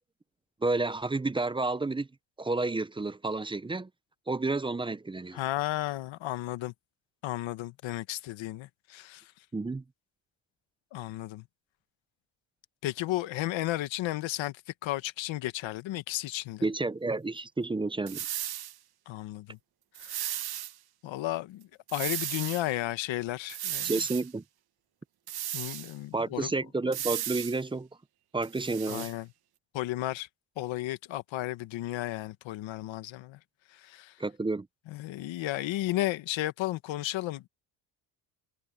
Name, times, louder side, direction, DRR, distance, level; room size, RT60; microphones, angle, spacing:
voice 1, 0.6-2.1 2.4-3.9 4.3-5.4 9.5-9.8 16.6-18.3 23.8-24.4 26.1-27.9 28.3-29.1 34.2-34.7, right 3 dB, 10° right, 0.5 m, -30 dB
voice 2, 5.3-6.7 7.2-9.3 10.9-11.4 12.8-16.6 19.1-19.6 20.0-20.5 21.0-24.0 25.5-26.5 28.9-29.3 29.7-30.3 30.6-33.4 33.7-34.1 34.9-37.4, left 16 dB, 75° left, 1.3 m, -34 dB
sound 1, 18.1-18.7 19.9-20.7 21.9-22.6 23.5-24.3 25.3-25.9 26.9-27.6 28.4-29.1, right 12 dB, 55° right, 1.1 m, -35 dB
cardioid pair, 110°, 45 cm